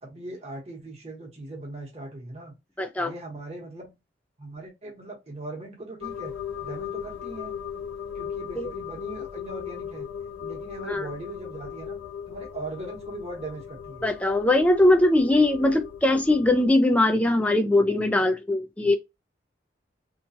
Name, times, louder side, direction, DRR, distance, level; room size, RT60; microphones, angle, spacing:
voice 1, 0.0-2.5 3.0-3.9 4.4-6.3 6.6-7.6 8.1-10.1 10.4-12.0 12.3-14.1, right 2 dB, 35° right, 1.1 m, -39 dB
voice 2, 2.8-3.1 8.6-8.7 10.9-11.1 14.0-19.0, left 1 dB, 5° left, 0.3 m, -21 dB
sound 1, 6.0-16.7, left 8 dB, 85° left, 0.4 m, -37 dB
3.0 x 2.3 x 2.7 m
head